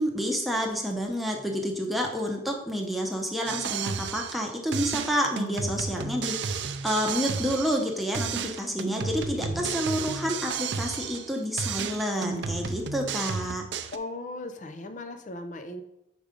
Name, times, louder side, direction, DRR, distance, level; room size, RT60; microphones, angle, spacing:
voice 1, 0.0-13.6, equal, ahead, 0 dB, 0.8 m, -29 dB
sound 1, 3.5-4.5 4.7-7.9 8.1-11.3 11.6-14.0, right 6 dB, 65° right, 0.4 m, -32 dB
voice 2, 9.4-9.8 13.9-15.8, left 2 dB, 40° left, 8 dB, 0.5 m, -38 dB
5.2 x 4.7 x 5.1 m, 0.86 s
head